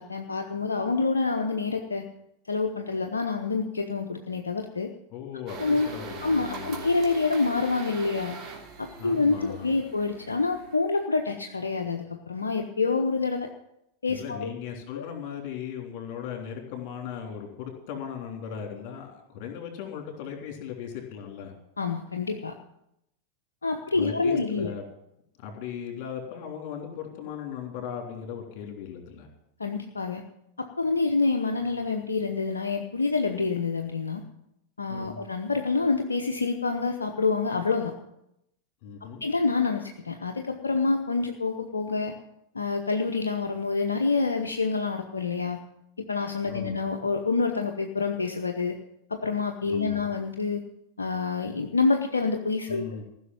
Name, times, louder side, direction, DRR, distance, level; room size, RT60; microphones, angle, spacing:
voice 1, 0.0-2.0 2.5-4.9 5.6-5.9 6.2-8.4 8.8-13.5 14.0-14.5 14.9-15.0 21.8-22.6 23.6-24.7 29.6-30.2 30.6-34.2 34.8-37.9 39.2-42.1 42.5-45.6 46.0-48.8 49.1-50.6 51.0-53.0, left 4 dB, 75° left, 4 dB, 0.9 m, -27 dB
voice 2, 5.1-6.9 9.0-9.7 14.1-21.5 24.0-24.8 25.4-29.3 34.9-35.2 38.8-39.2 46.5-46.8 49.7-50.1 52.7-53.0, left 8 dB, 45° left, 3 dB, 3.4 m, -37 dB
sound 1, 5.5-10.8, right 4 dB, 30° right, 3.1 m, -41 dB
15.0 x 6.4 x 9.5 m, 0.81 s
figure-of-eight pair, 90°, 0 cm